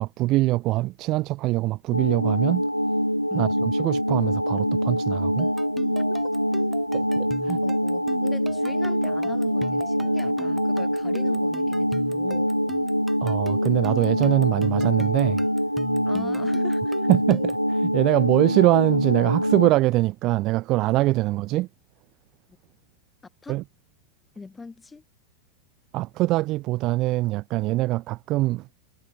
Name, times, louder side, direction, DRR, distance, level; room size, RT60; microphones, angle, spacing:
voice 1, 0.0-2.6 3.3-5.5 6.9-7.6 13.2-15.5 17.1-21.7 23.5-23.6 25.9-28.7, right 18 dB, 40° right, 2.4 m, -23 dB
sound 1, 1.9-19.7, equal, 90° left, 1.1 m, -24 dB
voice 2, 3.3-3.6 7.6-12.5 16.0-16.9 23.4-23.6 24.3-25.0, left 4 dB, 10° left, 4.9 m, -41 dB
sound 2, 5.4-17.7, right 2 dB, 10° right, 1.8 m, -40 dB
figure-of-eight pair, 90°, 0 cm